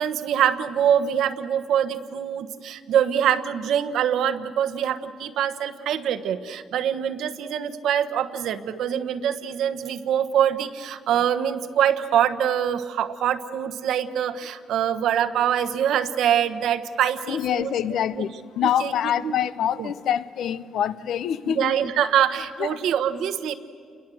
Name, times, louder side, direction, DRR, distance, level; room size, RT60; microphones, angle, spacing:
voice 1, 0.0-17.7 18.1-18.2 18.6-19.4 19.8-19.9 21.4-23.5, right 9 dB, 80° right, 11 dB, 1.2 m, -24 dB
voice 2, 17.3-21.9 22.6-22.7, left 9 dB, 75° left, 15 dB, 0.7 m, -25 dB
29.0 x 21.5 x 7.7 m, 2.2 s
cardioid pair, 90°, 0 cm